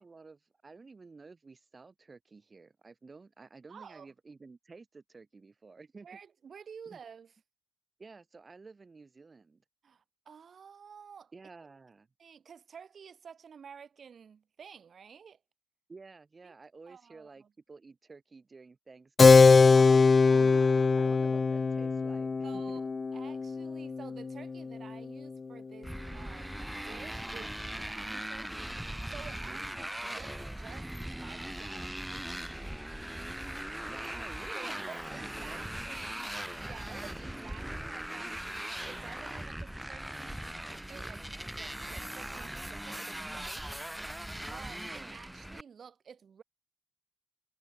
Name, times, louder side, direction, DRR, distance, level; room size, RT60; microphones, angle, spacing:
voice 1, 0.0-6.1 6.9-7.0 8.0-9.6 11.3-12.1 15.9-19.9 20.3-22.8 29.5-29.9 33.9-36.4 44.6-45.2, right 4 dB, 25° right, 7.6 m, -52 dB
voice 2, 3.7-4.1 6.0-7.3 9.8-11.3 12.2-15.4 16.4-16.5 16.9-17.5 19.7-21.1 22.4-32.5 34.5-36.3 36.6-41.3 41.5-43.7 44.0-46.4, right 7 dB, 45° right, 6.5 m, -51 dB
Keyboard (musical), 19.2-25.3, left 4 dB, 30° left, 0.3 m, -22 dB
Motorcycle, 25.8-45.6, right 1 dB, 5° right, 1.5 m, -40 dB
cardioid pair, 85°, 0 cm